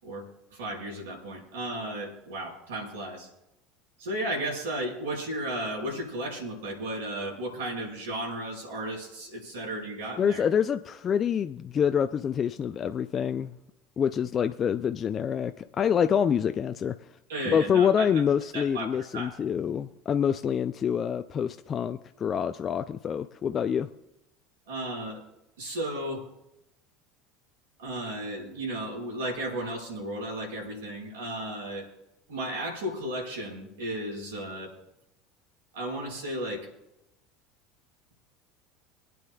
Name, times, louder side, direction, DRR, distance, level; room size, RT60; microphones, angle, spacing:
voice 1, 0.5-3.3 4.0-10.4 17.3-18.1 18.5-19.3 24.7-25.2 25.6-26.3 27.8-31.9 32.3-34.7 35.7-36.7, right 1 dB, 75° right, -2 dB, 4.8 m, -34 dB
voice 2, 10.2-13.5 14.0-17.0 17.5-23.9, left 8 dB, 35° left, 8 dB, 0.4 m, -26 dB
26.0 x 9.3 x 2.3 m, 0.87 s
hypercardioid pair, 75°, 0 cm